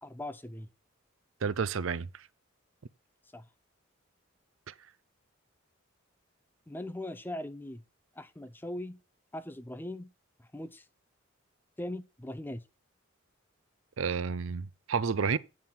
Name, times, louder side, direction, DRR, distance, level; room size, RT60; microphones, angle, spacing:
voice 1, 0.0-0.7 3.3-3.4 6.7-7.8 8.2-9.0 9.3-10.1 10.5-10.8 11.8-12.6, left 1 dB, 10° left, 0.5 m, -40 dB
voice 2, 1.4-2.1 4.7-4.8 14.0-15.4, right 5 dB, 75° right, 0.6 m, -30 dB
9.5 x 5.4 x 4.3 m
head